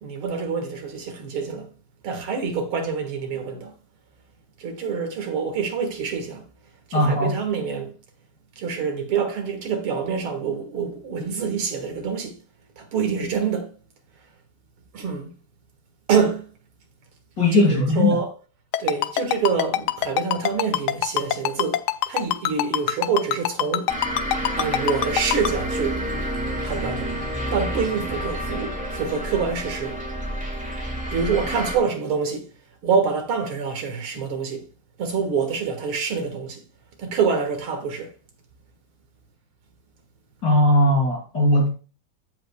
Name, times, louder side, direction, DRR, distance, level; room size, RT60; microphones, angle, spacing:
voice 1, 0.0-1.7 2.0-3.7 4.6-6.5 6.9-7.9 8.6-12.4 12.8-13.8 14.9-15.3 16.1-16.5 17.5-18.3 18.8-24.3 24.6-26.0 26.6-27.1 27.5-30.0 31.1-32.6 32.8-34.6 35.0-36.6 37.0-38.1, right 6 dB, 90° right, 2.6 m, -26 dB
voice 2, 6.9-7.4 17.4-18.2 40.4-41.7, left 2 dB, 55° left, 3.8 m, -19 dB
Ringtone, 18.7-25.5, left 13 dB, 80° left, 0.9 m, -22 dB
sound 1, 23.9-31.8, right 1 dB, 5° right, 1.4 m, -29 dB
15.5 x 5.5 x 2.2 m
omnidirectional pair, 2.3 m